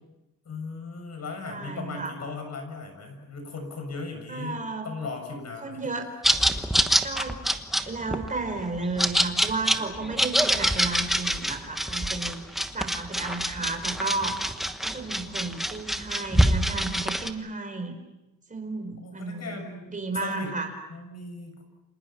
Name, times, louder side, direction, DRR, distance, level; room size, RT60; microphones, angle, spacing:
voice 1, 0.5-5.9 14.9-15.5 19.0-19.9 20.2-20.5 20.9-21.6, left 3 dB, 55° left, 5 dB, 7.0 m, -37 dB
voice 2, 1.5-2.2 4.3-4.9 5.6-6.1 7.0-7.4 7.9-14.4 14.8-17.9 18.5-19.6 19.9-20.7, right 3 dB, 25° right, 5 dB, 4.1 m, -33 dB
sound 1, 6.2-17.3, equal, ahead, 1.2 m, -25 dB
30.0 x 26.5 x 5.9 m, 0.98 s
wide cardioid pair, 180°, 32 cm